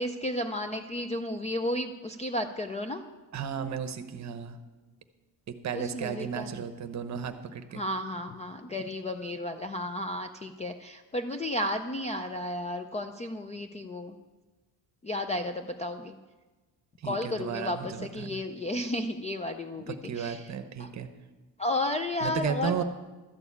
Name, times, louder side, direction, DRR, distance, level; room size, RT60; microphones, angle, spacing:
voice 1, 0.0-3.0 5.7-6.6 7.7-14.2 15.0-16.1 17.0-20.5 20.8-20.9 21.6-22.8, left 1 dB, 20° left, 7 dB, 0.3 m, -33 dB
voice 2, 3.3-4.6 5.5-7.8 17.0-18.4 19.9-21.1 22.2-22.8, right 7 dB, 40° right, 9 dB, 0.9 m, -34 dB
13.0 x 7.0 x 8.4 m, 1.2 s
cardioid pair, 165°, 43 cm